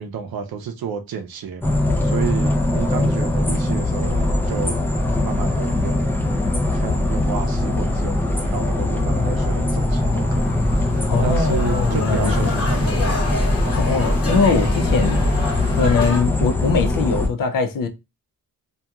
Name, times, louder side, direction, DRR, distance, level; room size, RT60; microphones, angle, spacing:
voice 1, 0.0-1.7 2.0-4.8 5.2-6.1 6.7-8.2 8.4-10.6 11.2-13.1 13.6-13.8, right 6 dB, 85° right, 0.6 m, -30 dB
sound 1, 1.6-17.3, left 1 dB, 5° left, 0.4 m, -21 dB
sound 2, 10.2-16.2, left 2 dB, 40° left, 0.9 m, -29 dB
voice 2, 11.1-13.1 13.8-15.2 15.7-17.9, left 5 dB, 65° left, 0.5 m, -22 dB
2.8 x 2.3 x 2.3 m
wide cardioid pair, 135°, 36 cm